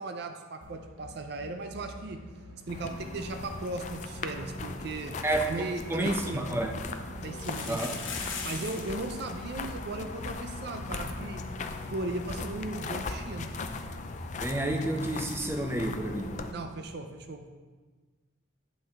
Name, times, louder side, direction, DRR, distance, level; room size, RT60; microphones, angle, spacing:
voice 1, 0.0-2.2 2.7-5.2 5.5-6.6 7.2-8.1 8.4-11.5 11.9-13.5 16.5-17.5, right 2 dB, 55° right, 6 dB, 0.5 m, -37 dB
sound 1, 0.6-16.6, right 1 dB, 75° right, 1.0 m, -46 dB
sound 2, 2.7-16.5, left 4 dB, 40° left, 0.4 m, -39 dB
voice 2, 5.2-6.7 7.7-7.9 14.4-16.4, right 1 dB, 10° right, 4 dB, 0.5 m, -30 dB
sound 3, 7.2-9.0 9.3-9.4 9.6-9.8 10.4-10.5 10.8-10.9 12.9-13.0, left 5 dB, 80° left, 1.0 m, -38 dB
9.0 x 5.5 x 3.5 m, 1.4 s
head